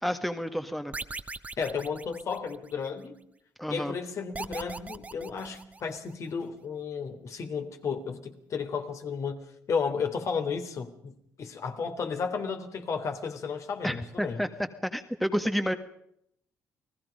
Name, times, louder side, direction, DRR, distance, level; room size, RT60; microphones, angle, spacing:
voice 1, 0.0-0.9 3.6-3.9 13.8-14.5 14.8-15.7, equal, ahead, 1.6 m, -30 dB
sound 1, 0.9-2.9 4.3-6.1, right 3 dB, 25° right, 1.3 m, -40 dB
voice 2, 1.6-3.2 3.7-9.4 9.7-14.4, left 5 dB, 60° left, 3.4 m, -33 dB
29.5 x 19.0 x 5.3 m
cardioid pair, 90°, 6 cm